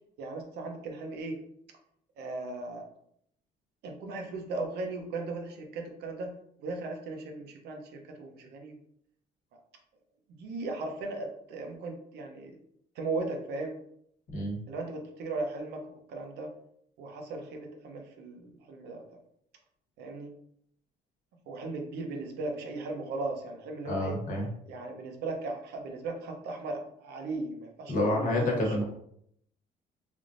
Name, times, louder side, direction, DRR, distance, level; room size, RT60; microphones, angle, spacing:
voice 1, 0.2-1.4 2.2-2.8 3.8-6.3 6.6-8.7 10.4-12.6 13.0-13.8 14.7-16.5 17.0-19.0 20.0-20.3 21.5-24.2 24.7-28.8, right 3 dB, 75° right, 3 dB, 0.7 m, -37 dB
voice 2, 23.8-24.5 27.9-28.8, left 1 dB, 50° left, 0 dB, 1.1 m, -28 dB
3.4 x 2.5 x 2.5 m, 0.71 s
cardioid pair, 110°, 17 cm